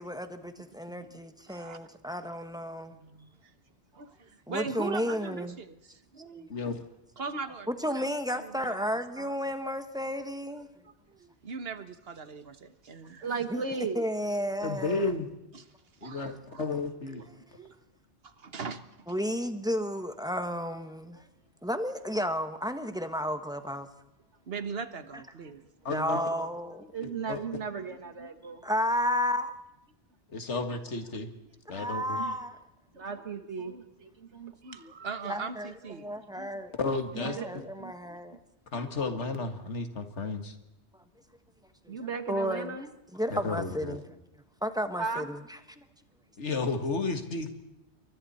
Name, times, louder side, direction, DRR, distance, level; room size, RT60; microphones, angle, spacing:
voice 1, 0.0-2.9 4.5-5.6 6.4-6.5 7.7-10.7 13.5-15.1 19.1-21.2 21.6-23.9 25.9-26.8 28.6-29.5 31.7-32.6 35.2-35.7 36.0-36.7 37.2-38.4 41.8-42.8 43.1-44.0 44.6-45.8, equal, 5° right, 8 dB, 1.3 m, -32 dB
voice 2, 1.5-1.8 2.9-3.3 4.0-6.6 7.2-8.0 8.3-8.9 9.2-9.3 10.8-13.2 15.5-15.6 16.0-16.7 17.1-17.8 18.2-18.8 24.5-25.6 34.6-36.2, right 5 dB, 60° right, 11 dB, 1.4 m, -40 dB
voice 3, 6.5-6.8 14.6-15.3 16.0-17.2 25.8-26.2 27.3-27.4 30.3-31.3 31.7-32.2 36.8-37.4 38.7-40.6 43.3-44.0 46.4-47.5, left 3 dB, 85° left, 7 dB, 2.1 m, -32 dB
voice 4, 13.2-14.1 26.8-28.6 31.8-31.9 32.2-32.4 32.9-34.9 36.4-36.5 37.2-38.2 41.9-42.9 45.0-45.3, right 5 dB, 80° right, 8 dB, 2.0 m, -36 dB
28.0 x 23.5 x 4.3 m, 0.94 s
omnidirectional pair, 1.2 m